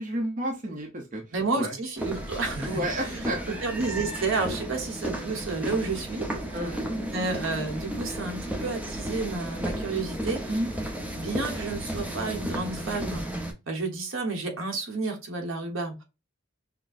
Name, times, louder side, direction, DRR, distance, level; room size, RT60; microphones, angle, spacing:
voice 1, 0.0-1.8 2.6-3.6 6.5-6.8 10.5-10.7, right 1 dB, 40° right, 1 dB, 0.8 m, -31 dB
voice 2, 1.3-10.7 11.2-13.3 13.7-16.0, right 3 dB, 65° right, 3 dB, 1.2 m, -31 dB
sound 1, 2.0-13.5, right 1 dB, 5° right, 0.8 m, -34 dB
6.0 x 2.2 x 2.5 m, 0.27 s
head